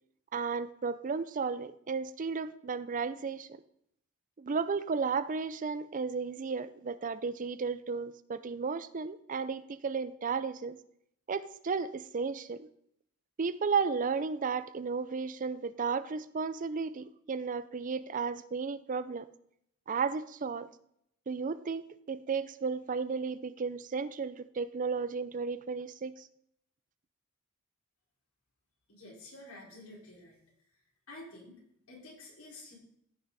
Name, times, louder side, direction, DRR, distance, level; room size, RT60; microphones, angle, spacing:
voice 1, 0.3-3.5 4.4-10.8 11.3-12.7 13.4-19.3 19.9-20.7 21.3-26.3, right 5 dB, 40° right, 15 dB, 0.5 m, -34 dB
voice 2, 28.9-30.4 31.1-31.6 31.9-32.7, left 2 dB, 85° left, -4 dB, 4.9 m, -50 dB
15.5 x 6.0 x 4.1 m, 0.71 s
head